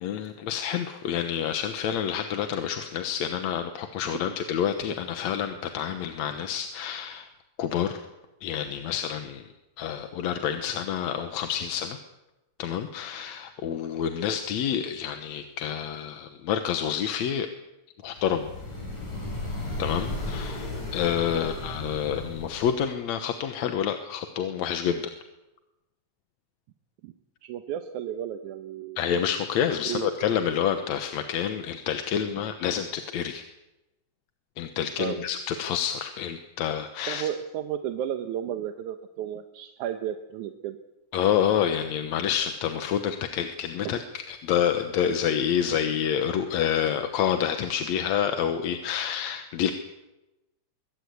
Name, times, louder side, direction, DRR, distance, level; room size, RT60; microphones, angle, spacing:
voice 1, 0.0-7.3 7.6-8.0 8.4-9.5 9.8-12.0 12.6-17.5 18.0-18.5 19.8-25.0 29.0-33.4 34.6-37.3 41.1-49.7, left 9 dB, 70° left, 7 dB, 2.4 m, -28 dB
sound 1, 18.2-22.9, left 2 dB, 90° left, 7.9 m, -35 dB
voice 2, 27.4-29.0 29.8-30.1 35.0-35.3 37.1-40.8 43.8-43.9, right 10 dB, 90° right, 7 dB, 2.4 m, -33 dB
23.0 x 17.5 x 8.3 m, 0.99 s
omnidirectional pair, 3.4 m